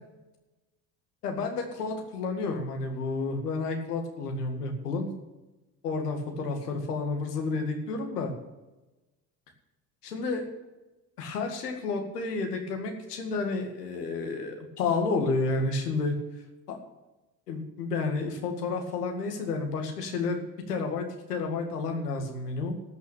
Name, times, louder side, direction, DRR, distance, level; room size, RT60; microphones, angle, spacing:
voice 1, 1.2-5.1 5.8-8.3 10.0-10.5 11.2-16.2 16.7-16.8 17.5-20.4 20.7-22.7, left 3 dB, 90° left, 3 dB, 2.1 m, -30 dB
13.0 x 6.1 x 8.7 m, 1.1 s
hypercardioid pair, 70°, 46 cm